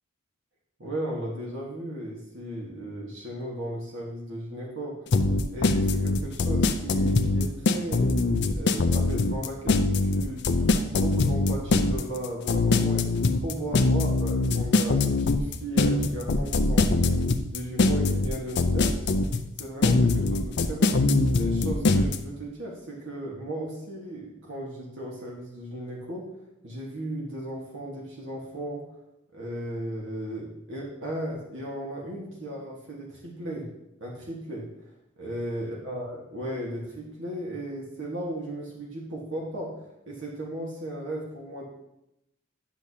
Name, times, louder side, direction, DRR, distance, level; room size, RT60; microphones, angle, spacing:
voice 1, 0.8-5.2 5.5-8.1 8.5-17.2 17.5-19.0 19.6-21.0 21.3-26.2 26.6-28.8 29.3-33.7 34.0-34.7 35.2-41.6, right 1 dB, 65° right, -3 dB, 1.5 m, -36 dB
sound 1, 5.1-22.2, left 3 dB, 60° left, 0.5 m, -22 dB
10.0 x 6.2 x 2.8 m, 0.85 s
head